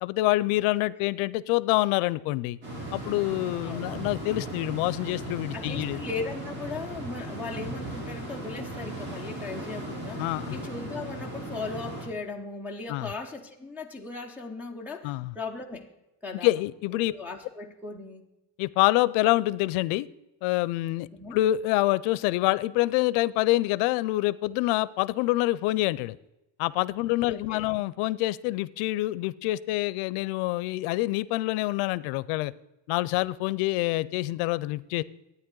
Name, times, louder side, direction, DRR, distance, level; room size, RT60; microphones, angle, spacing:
voice 1, 0.0-2.6 2.9-6.0 10.2-10.6 12.9-13.1 15.0-15.3 16.4-17.1 18.6-20.1 20.4-26.2 26.6-32.5 32.9-35.0, left 18 dB, 80° left, 19 dB, 0.6 m, -26 dB
sound 1, 2.6-12.1, right 1 dB, 70° right, 4.5 m, -37 dB
voice 2, 3.6-4.0 5.5-15.9 16.2-16.6 16.9-18.3 21.1-21.4 27.3-27.8, left 3 dB, 5° right, -2 dB, 0.4 m, -38 dB
12.5 x 9.4 x 3.8 m, 0.94 s
cardioid pair, 170°, 49 cm